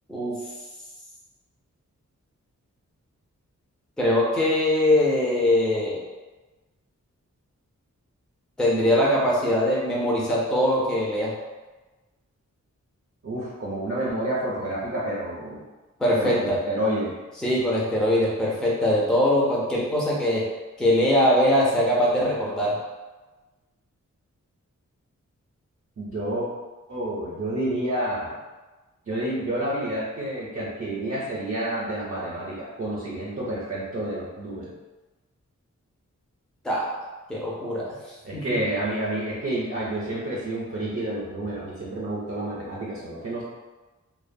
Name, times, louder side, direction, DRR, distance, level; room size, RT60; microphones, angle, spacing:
voice 1, 4.0-6.0 8.6-11.3 16.0-16.6 17.4-20.4 20.8-22.8 36.6-36.9 37.3-37.8 38.3-38.4, left 1 dB, ahead, -5 dB, 0.4 m, -22 dB
voice 2, 13.2-15.6 16.1-17.1 26.0-26.5 26.9-28.4 29.1-34.7 38.2-43.4, right 1 dB, 45° right, -6 dB, 0.5 m, -29 dB
2.5 x 2.1 x 2.5 m, 1.2 s
wide cardioid pair, 110°, 30 cm